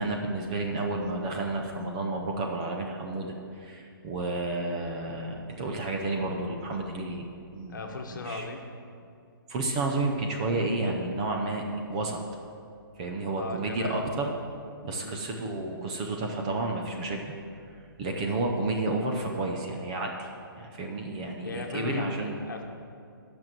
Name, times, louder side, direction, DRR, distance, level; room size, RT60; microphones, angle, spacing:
voice 1, 0.0-7.2 7.5-7.8 8.1-8.4 9.5-11.6 11.9-12.2 13.0-14.3 14.8-17.3 18.0-20.3 20.6-22.4, right 2 dB, 15° right, 1 dB, 0.5 m, -31 dB
voice 2, 7.7-8.6 13.4-14.0 14.9-15.1 21.4-22.1 22.5-22.6, left 3 dB, 55° left, 4 dB, 1.1 m, -36 dB
9.0 x 6.1 x 7.5 m, 2.4 s
hypercardioid pair, 170°, 12 cm